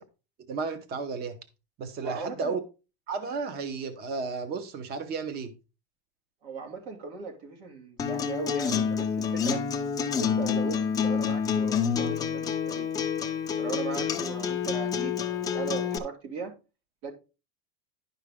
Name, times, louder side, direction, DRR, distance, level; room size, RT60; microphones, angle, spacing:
voice 1, 0.5-1.4 1.8-2.6 3.1-5.5, right 4 dB, 30° right, 0.9 m, -33 dB
voice 2, 2.0-2.5 6.4-9.6 10.0-12.9 13.6-15.1 15.5-16.5 17.0-17.1, right 4 dB, 60° right, 2.6 m, -37 dB
Acoustic guitar, 8.0-16.0, left 7 dB, 10° left, 0.4 m, -28 dB
10.5 x 5.6 x 3.6 m
cardioid pair, 170°, 34 cm